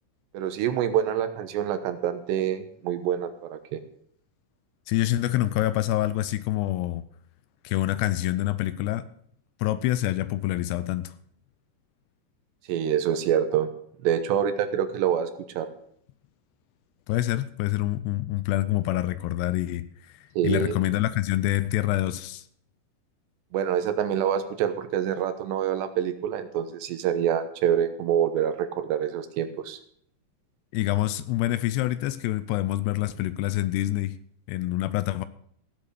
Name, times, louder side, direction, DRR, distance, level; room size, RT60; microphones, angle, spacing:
voice 1, 0.3-3.8 12.7-13.7 14.0-15.3 15.6-15.7 20.4-20.7 23.5-29.8, right 9 dB, 80° right, 3.1 m, -26 dB
voice 2, 4.9-7.0 7.6-9.1 9.6-11.1 17.1-22.5 30.7-34.2 34.5-35.3, left 15 dB, 80° left, 2.6 m, -26 dB
16.0 x 7.8 x 6.7 m
omnidirectional pair, 5.1 m